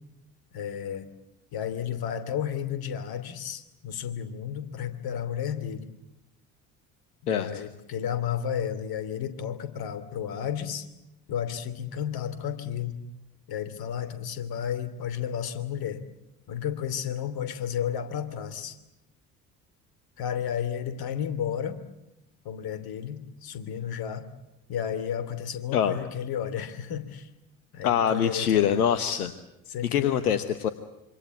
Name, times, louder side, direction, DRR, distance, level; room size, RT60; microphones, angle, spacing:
voice 1, 0.5-1.1 1.5-5.8 7.2-10.9 11.3-13.0 13.5-16.0 16.5-18.8 20.2-21.8 22.4-24.3 24.7-27.3 27.7-28.9 29.7-30.3, left 9 dB, 55° left, 12 dB, 2.9 m, -32 dB
voice 2, 27.8-29.3 29.9-30.7, left 9 dB, 80° left, 11 dB, 1.2 m, -24 dB
26.5 x 25.0 x 8.2 m, 0.90 s
figure-of-eight pair, 50°, 44 cm